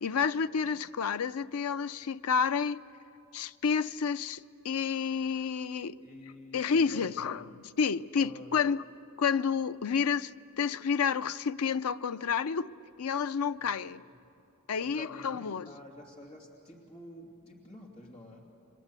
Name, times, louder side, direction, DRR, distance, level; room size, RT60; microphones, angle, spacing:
voice 1, 0.0-2.8 3.3-5.9 6.5-7.4 7.8-8.8 9.2-12.7 13.0-14.0 14.7-15.7, left 6 dB, 80° left, 0.5 m, -30 dB
voice 2, 6.0-7.3 8.1-8.6 13.6-13.7 14.8-18.4, left 1 dB, 25° left, 2.7 m, -50 dB
29.5 x 24.5 x 8.2 m
head